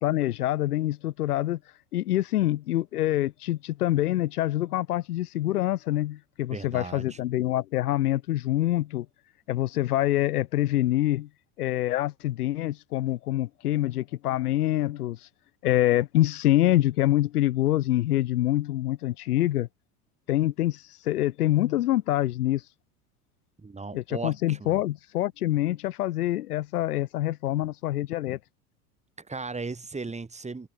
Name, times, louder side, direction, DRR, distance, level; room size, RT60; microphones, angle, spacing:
voice 1, 0.0-1.6 1.9-9.1 9.5-11.3 11.6-15.2 15.6-19.7 20.3-22.6 23.9-28.4, left 14 dB, 75° left, 2.3 m, -25 dB
voice 2, 6.5-7.2 23.6-24.8 29.2-30.7, right 3 dB, 15° right, 5.7 m, -36 dB
hypercardioid pair, 85°, 45 cm